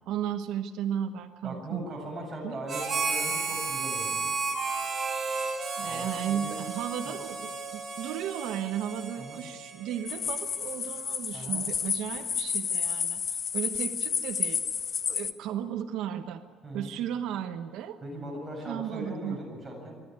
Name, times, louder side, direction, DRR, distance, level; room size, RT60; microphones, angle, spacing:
voice 1, 0.1-2.1 2.4-2.6 5.8-14.6 15.1-16.4 16.7-18.0 18.7-19.4, right 10 dB, 80° right, 7 dB, 1.1 m, -35 dB
voice 2, 1.4-4.3 5.9-6.6 7.0-7.2 9.2-9.4 11.3-11.7 16.6-16.9 18.0-20.0, right 1 dB, 10° right, -3 dB, 7.9 m, -39 dB
Harmonica, 2.7-10.4, right 4 dB, 25° right, 5.7 m, -33 dB
sound 1, 10.1-15.3, left 6 dB, 35° left, 0.8 m, -31 dB
25.0 x 13.0 x 9.6 m, 2.1 s
cardioid pair, 160°, 0 cm